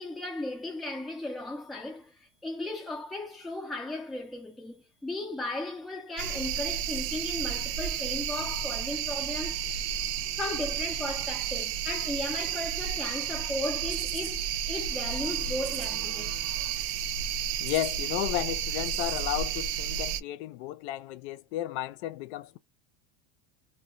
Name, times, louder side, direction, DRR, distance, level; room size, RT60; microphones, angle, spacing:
voice 1, 0.0-9.6 10.4-16.4, left 2 dB, ahead, 0.3 m, -36 dB
sound 1, 6.2-20.2, right 9 dB, 65° right, 0.5 m, -32 dB
voice 2, 17.6-22.6, left 14 dB, 65° left, 0.5 m, -33 dB
2.2 x 2.2 x 3.7 m
cardioid pair, 165°, 36 cm